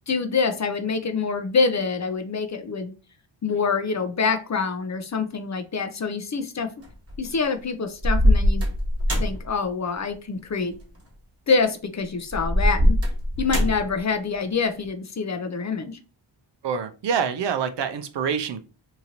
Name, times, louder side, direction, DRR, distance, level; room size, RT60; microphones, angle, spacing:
voice 1, 0.1-2.9 3.4-6.7 7.2-8.7 9.2-10.8 11.5-13.0 13.4-16.0, left 5 dB, 35° left, 0.5 m, -26 dB
sound 1, 6.8-7.3 8.0-9.5 10.8-11.0 12.3-14.0, equal, 30° right, 1.4 m, -21 dB
voice 2, 16.6-18.6, right 7 dB, 60° right, 0.5 m, -26 dB
2.8 x 2.5 x 2.8 m
cardioid pair, 60°, 48 cm